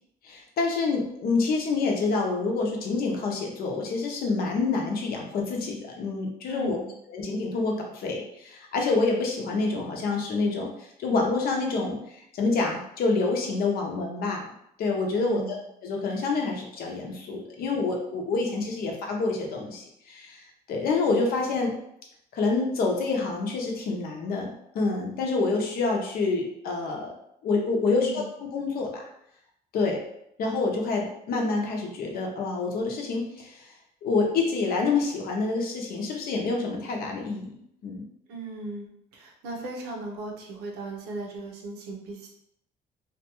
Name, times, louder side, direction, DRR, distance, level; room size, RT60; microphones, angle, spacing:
voice 1, 0.2-6.8 7.1-14.4 14.8-15.4 15.8-21.7 22.3-27.1 27.4-29.1 29.7-30.0 30.4-33.7 34.0-37.5 37.8-38.1, left 3 dB, 65° left, 1 dB, 0.7 m, -27 dB
voice 2, 6.5-7.0 15.2-15.6 27.9-28.3 38.3-42.3, right 2 dB, 80° right, 1 dB, 0.7 m, -37 dB
2.4 x 2.2 x 2.9 m, 0.74 s
cardioid pair, 110°, 17 cm